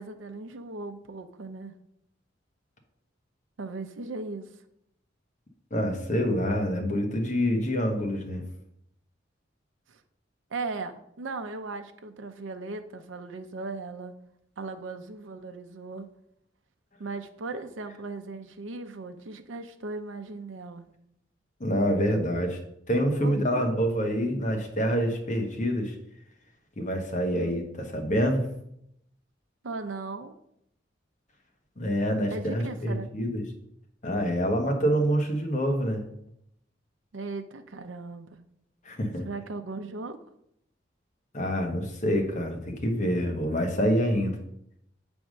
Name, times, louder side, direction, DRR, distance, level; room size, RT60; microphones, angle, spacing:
voice 1, 0.0-1.7 3.6-4.5 9.9-10.0 10.5-14.1 14.6-16.1 17.0-20.9 23.2-23.7 27.3-27.6 29.6-30.3 32.3-33.1 37.1-38.4 39.2-40.2, right 3 dB, 85° right, 7 dB, 0.6 m, -37 dB
voice 2, 5.7-8.4 21.6-22.6 22.9-25.9 26.8-28.5 31.8-33.4 34.0-36.0 38.8-39.2 41.3-44.4, equal, 40° left, 2 dB, 1.2 m, -26 dB
7.8 x 3.5 x 6.3 m, 0.76 s
head